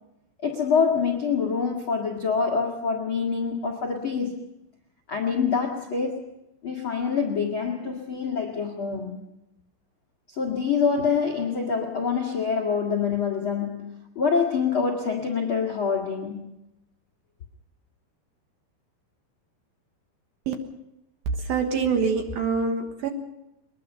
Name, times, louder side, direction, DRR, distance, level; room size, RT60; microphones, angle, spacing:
voice 1, 0.4-4.4 5.1-6.3 6.6-9.2 10.3-16.5, left 5 dB, 75° left, 1.2 m, -26 dB
voice 2, 21.3-23.1, right 5 dB, 65° right, 2.7 m, -25 dB
22.0 x 21.5 x 5.5 m
omnidirectional pair, 5.7 m